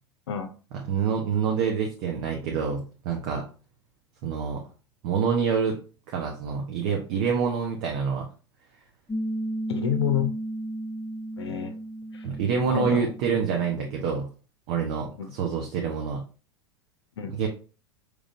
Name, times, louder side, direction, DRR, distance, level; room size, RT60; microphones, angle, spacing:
voice 1, 0.9-3.4 4.2-4.6 5.0-5.8 6.1-8.3 12.2-14.3 14.7-16.2 17.4-17.5, right 6 dB, 50° right, 1 dB, 0.8 m, -26 dB
Piano, 9.1-14.2, right 1 dB, 5° left, 0.7 m, -34 dB
voice 2, 9.7-10.3 11.4-11.7 12.1-12.3 12.7-13.1 15.2-15.3 17.2-17.3, left 9 dB, 70° left, 8 dB, 0.6 m, -28 dB
5.0 x 3.3 x 2.5 m, 0.36 s
figure-of-eight pair, 85°, 14 cm